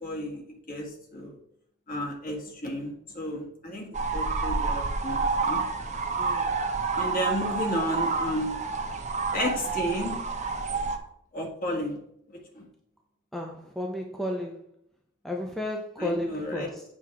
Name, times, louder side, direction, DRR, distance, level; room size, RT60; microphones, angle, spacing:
voice 1, 0.0-1.4 1.9-3.9 4.1-5.6 6.9-8.6 9.3-10.2 11.3-12.0 12.3-12.7 16.0-16.7, left 1 dB, 45° left, 0 dB, 1.8 m, -32 dB
sound 1, 3.9-11.0, right 4 dB, 35° right, 0.8 m, -29 dB
voice 2, 6.2-6.6 13.3-14.6 15.2-16.8, left 1 dB, ahead, 1 dB, 0.6 m, -33 dB
7.5 x 3.6 x 6.0 m, 0.71 s
head